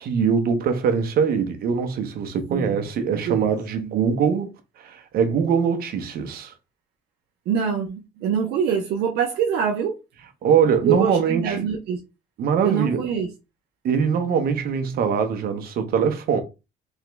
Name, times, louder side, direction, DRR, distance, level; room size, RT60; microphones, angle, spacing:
voice 1, 0.0-4.5 4.8-6.5 10.4-11.6 12.4-13.0 13.8-16.4, right 6 dB, 60° right, 1.0 m, -22 dB
voice 2, 2.5-2.8 3.1-3.5 7.5-10.0 10.9-12.0 12.6-13.3, right 7 dB, 80° right, 0.7 m, -24 dB
3.6 x 3.0 x 3.4 m
cardioid pair, 110°, 17 cm